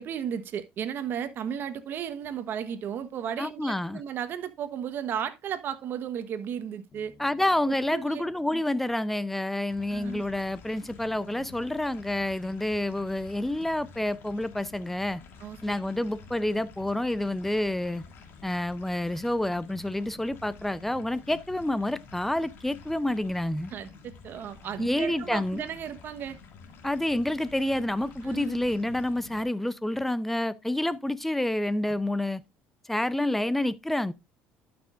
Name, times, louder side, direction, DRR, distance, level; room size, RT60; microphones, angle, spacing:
voice 1, 0.0-7.1 7.7-8.2 8.5-8.6 9.9-10.2 15.4-15.7 23.7-26.4 28.2-28.6, right 8 dB, 50° right, 1.2 m, -34 dB
voice 2, 3.4-4.0 7.2-15.2 15.6-18.0 18.4-23.7 24.8-25.6 26.8-32.4 32.9-34.1, left 1 dB, 5° left, 0.6 m, -28 dB
Bass guitar, 6.9-10.6, left 2 dB, 30° left, 3.2 m, -60 dB
sound 1, 9.7-29.4, left 5 dB, 60° left, 2.1 m, -49 dB
12.0 x 6.1 x 2.5 m
cardioid pair, 105°, 4 cm